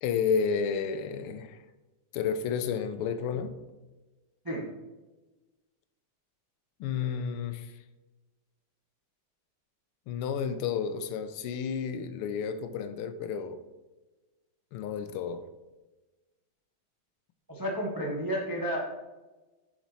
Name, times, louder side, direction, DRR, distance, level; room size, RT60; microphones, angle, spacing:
voice 1, 0.0-1.6 2.1-3.5 6.8-7.7 10.1-13.6 14.7-15.4, left 6 dB, 85° left, 1.5 m, -31 dB
voice 2, 17.5-18.8, equal, 30° right, 0.4 m, -31 dB
7.3 x 5.2 x 4.1 m
omnidirectional pair, 2.4 m